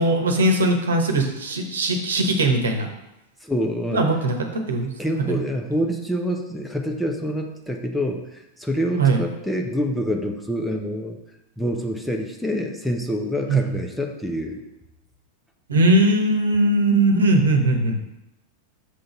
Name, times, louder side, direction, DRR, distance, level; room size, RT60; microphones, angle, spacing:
voice 1, 0.0-2.9 3.9-4.9 5.3-5.4 9.0-9.2 13.5-13.7 15.7-17.9, right 2 dB, 70° right, 4 dB, 1.1 m, -20 dB
voice 2, 3.4-4.0 5.0-11.2 11.6-14.6, equal, ahead, 2 dB, 0.8 m, -26 dB
6.8 x 3.9 x 5.9 m, 0.92 s
figure-of-eight pair, 90°, 0 cm